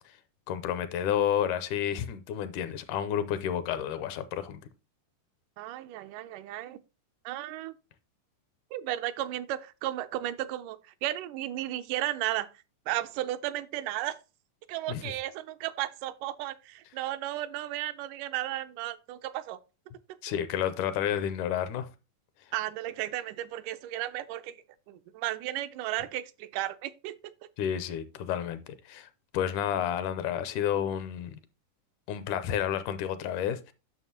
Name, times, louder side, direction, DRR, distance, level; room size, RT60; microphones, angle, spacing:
voice 1, 0.5-4.6 14.9-15.0 20.2-21.9 27.6-28.6 28.9-29.1 29.3-31.4 32.1-33.7, left 9 dB, 80° left, 2.1 m, -30 dB
voice 2, 5.6-6.8 7.3-7.7 8.7-12.5 12.9-14.2 14.7-19.6 22.5-24.6 24.9-27.2, right 14 dB, 80° right, 2.0 m, -34 dB
9.1 x 6.5 x 2.8 m
omnidirectional pair, 3.7 m